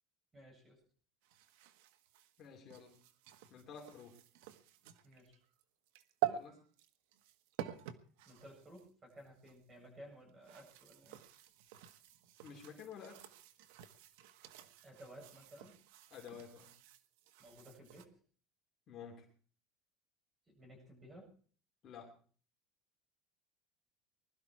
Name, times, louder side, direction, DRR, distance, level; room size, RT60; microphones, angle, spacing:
voice 1, 0.3-0.8 5.0-5.4 8.3-11.2 14.8-15.8 17.4-18.1 20.5-21.3, equal, 20° right, 2 dB, 7.7 m, -56 dB
sound 1, 1.2-9.6 10.3-18.1, right 13 dB, 80° right, 1.3 m, -47 dB
voice 2, 2.4-3.0 3.5-4.2 6.3-6.6 12.4-13.3 16.1-16.7 18.9-19.3 21.8-22.1, left 7 dB, 35° left, 1 dB, 2.9 m, -51 dB
20.5 x 12.5 x 4.6 m, 0.43 s
cardioid pair, 155°, 0 cm